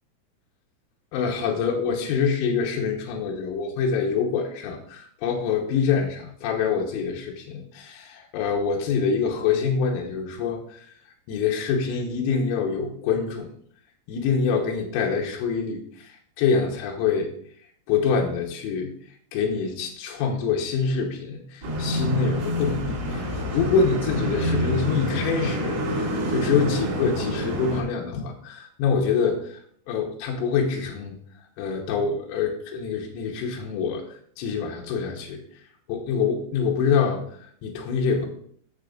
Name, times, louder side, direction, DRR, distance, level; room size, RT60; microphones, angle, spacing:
voice 1, 1.1-10.9 11.3-13.5 14.1-17.3 17.9-18.9 19.3-29.6 29.9-31.2 31.6-35.4 35.9-38.3, left 5 dB, 90° left, 0 dB, 3.6 m, -25 dB
sound 1, 21.6-27.8, equal, 45° right, 2.2 m, -27 dB
12.0 x 6.8 x 2.5 m, 0.62 s
omnidirectional pair, 5.9 m